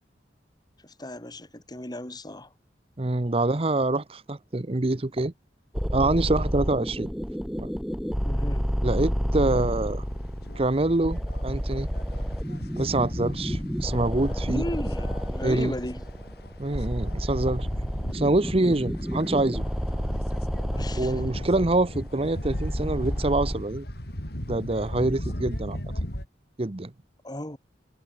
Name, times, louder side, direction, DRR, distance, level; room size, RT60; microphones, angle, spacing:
voice 1, 0.8-2.5 8.2-8.7 14.5-16.0 20.8-21.4 27.2-27.6, left 1 dB, 25° left, 4.1 m, -35 dB
voice 2, 3.0-5.3 5.9-7.1 7.6-7.7 8.8-10.0 10.6-11.9 12.8-14.6 15.4-15.7 16.6-17.7 18.1-19.6 20.9-23.8 24.5-25.8 26.6-26.9, right 2 dB, 35° right, 0.9 m, -25 dB
sound 1, 5.7-23.6, equal, ahead, 3.9 m, -30 dB
sound 2, 9.7-26.3, equal, 60° left, 6.3 m, -37 dB
head